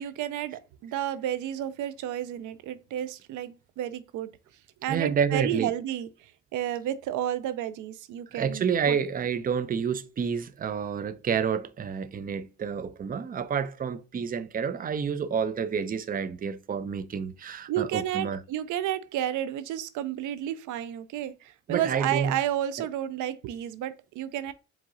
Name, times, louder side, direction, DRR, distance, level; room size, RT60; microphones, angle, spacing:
voice 1, 0.0-4.3 4.8-9.0 17.7-24.5, right 11 dB, 80° right, 0.5 m, -31 dB
voice 2, 4.9-5.7 8.3-18.4 21.7-22.3, right 7 dB, 30° right, 0.5 m, -29 dB
4.6 x 3.6 x 2.6 m
cardioid pair, 90°, 30 cm